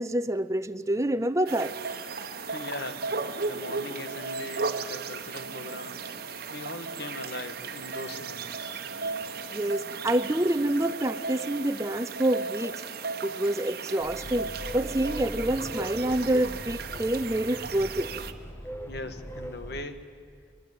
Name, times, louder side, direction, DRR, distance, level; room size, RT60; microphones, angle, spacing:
voice 1, 0.0-1.8 9.0-9.1 9.5-12.8 13.2-18.1, right 1 dB, 15° right, 0.7 m, -27 dB
sound 1, 1.5-18.3, right 4 dB, 55° right, 1.2 m, -36 dB
voice 2, 2.2-6.2 6.5-8.8 18.9-20.0, left 2 dB, 60° left, 1.7 m, -40 dB
sound 2, 14.0-19.8, equal, 15° left, 1.3 m, -40 dB
23.5 x 22.0 x 9.5 m
head